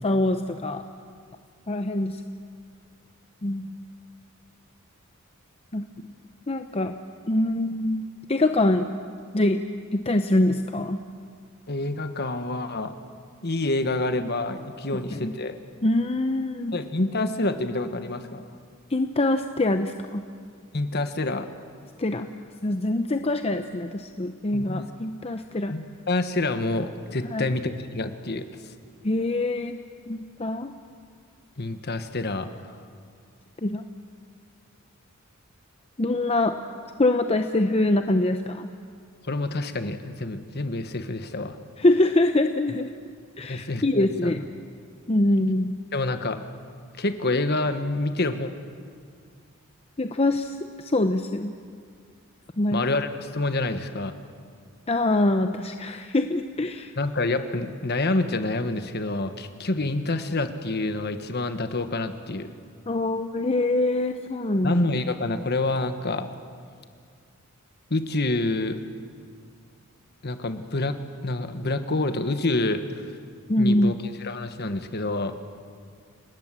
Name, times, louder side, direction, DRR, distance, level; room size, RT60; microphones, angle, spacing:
voice 1, 0.0-0.8 1.7-2.2 3.4-3.7 5.7-5.8 6.5-6.9 7.3-8.9 9.3-9.6 9.9-11.0 15.1-15.3 15.8-16.7 18.9-20.2 22.0-22.3 22.6-25.7 27.3-27.5 29.0-29.8 30.1-30.7 33.6-33.8 36.0-36.5 37.0-38.7 41.8-42.9 43.4-44.4 45.1-45.7 50.0-51.5 52.6-52.9 54.9-56.9 62.9-64.7 73.5-73.9, left 2 dB, 30° left, 7 dB, 0.7 m, -24 dB
voice 2, 11.7-12.9 13.4-15.6 16.7-18.5 20.7-21.5 24.5-24.8 25.7-28.5 31.6-32.7 39.2-41.6 43.5-44.3 45.9-46.4 47.0-48.5 52.7-54.1 57.0-62.5 64.6-66.3 67.9-68.8 70.2-71.0 71.2-72.8 73.6-75.3, left 2 dB, 50° left, 9 dB, 1.3 m, -27 dB
29.0 x 19.0 x 7.6 m, 2.2 s
head